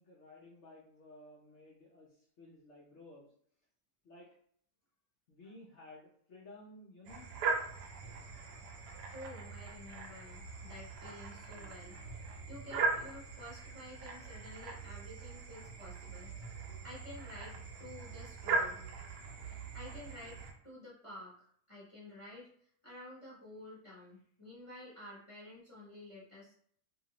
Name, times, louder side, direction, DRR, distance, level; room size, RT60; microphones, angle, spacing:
voice 1, 0.0-3.3 4.0-4.4 5.3-7.3, left 2 dB, 60° left, -4 dB, 0.8 m, -55 dB
sound 1, 7.1-20.5, right 4 dB, 90° right, 1.2 m, -40 dB
voice 2, 9.1-12.0 12.5-16.3 16.8-18.8 19.5-22.5 22.8-26.5, left 1 dB, 25° left, -7 dB, 0.8 m, -51 dB
2.7 x 2.6 x 2.9 m, 0.63 s
omnidirectional pair, 1.7 m